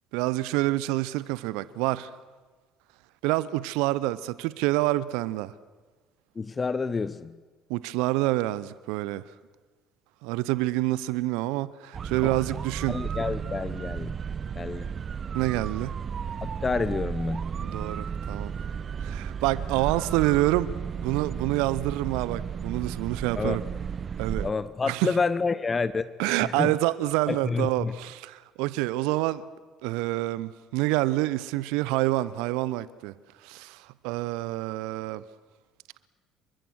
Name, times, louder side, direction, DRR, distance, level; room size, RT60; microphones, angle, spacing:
voice 1, 0.1-2.1 3.2-5.5 7.7-9.2 10.2-13.0 15.3-15.9 17.6-18.5 19.0-20.7 21.0-23.6 24.2-24.5 24.9-25.1 26.2-29.4 29.8-33.1 33.4-35.2, right 18 dB, 65° right, 0.8 m, -27 dB
voice 2, 6.3-7.4 12.9-14.1 14.5-14.9 16.4-17.5 23.3-23.6 24.4-26.1 26.4-26.7 27.3-28.0, left 4 dB, 30° left, 0.9 m, -29 dB
sound 1, 11.9-24.5, right 7 dB, 40° right, 0.8 m, -33 dB
28.5 x 24.0 x 6.4 m
figure-of-eight pair, 55°, 0 cm